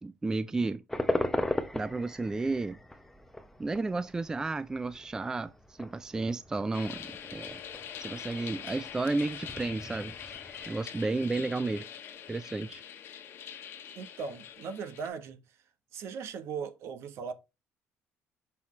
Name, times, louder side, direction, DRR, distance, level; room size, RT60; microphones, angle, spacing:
voice 1, 0.0-0.8 1.7-2.8 3.6-7.6 8.0-10.3 10.7-11.9 12.3-12.8, right 3 dB, 15° right, 0.3 m, -32 dB
sound 1, 0.9-10.8, left 1 dB, 5° left, 0.7 m, -38 dB
sound 2, 6.7-15.1, left 8 dB, 55° left, 1.2 m, -44 dB
voice 2, 14.0-15.6 15.9-17.3, right 6 dB, 60° right, 1.1 m, -38 dB
5.7 x 5.7 x 3.1 m
cardioid pair, 130°, 5 cm